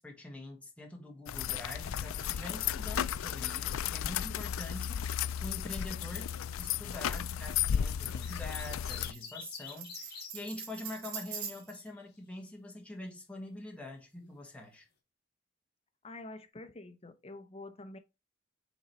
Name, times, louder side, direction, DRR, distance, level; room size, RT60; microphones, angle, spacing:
voice 1, 0.0-6.3 6.6-14.9, left 1 dB, 5° left, 1.5 m, -45 dB
sound 1, 1.3-9.1, left 9 dB, 75° left, 0.4 m, -34 dB
Tambourine, 6.8-11.9, right 7 dB, 85° right, 1.6 m, -45 dB
sound 2, 7.7-10.3 11.6-12.0, left 6 dB, 50° left, 2.1 m, -46 dB
voice 2, 16.0-18.0, left 2 dB, 30° left, 0.8 m, -47 dB
6.1 x 3.9 x 4.2 m
head